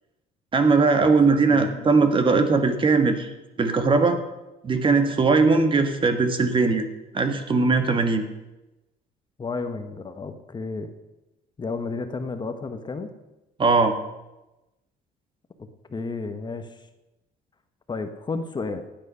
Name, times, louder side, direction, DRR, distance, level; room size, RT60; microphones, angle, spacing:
voice 1, 0.5-3.3 3.6-4.2 4.6-6.8 7.1-8.2 13.6-14.0, right 4 dB, 30° right, 7 dB, 1.5 m, -20 dB
voice 2, 1.5-1.9 9.4-10.9 11.6-13.1 15.9-16.9 17.9-18.8, left 4 dB, 25° left, 8 dB, 1.1 m, -32 dB
15.0 x 9.1 x 5.6 m, 1.0 s
cardioid pair, 110°, 17 cm